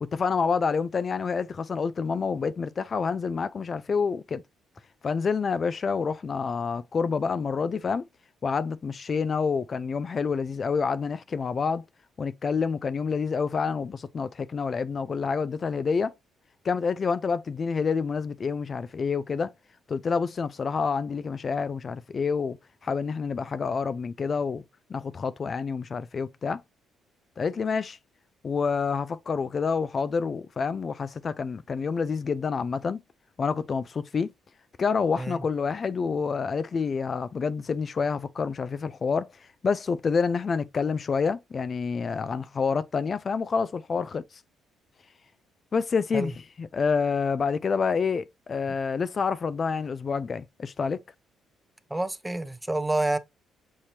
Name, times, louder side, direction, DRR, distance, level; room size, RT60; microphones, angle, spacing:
voice 1, 0.0-4.4 5.0-8.0 8.4-11.8 12.2-16.1 16.6-19.5 19.9-22.6 22.8-24.6 24.9-26.6 27.4-28.0 28.4-33.0 33.4-34.3 34.8-39.3 39.6-44.2 45.7-46.3 46.6-51.0, left 5 dB, 40° left, 0.3 m, -28 dB
voice 2, 51.9-53.2, right 2 dB, 10° right, 0.6 m, -28 dB
6.5 x 2.9 x 2.8 m
cardioid pair, 80°, 0 cm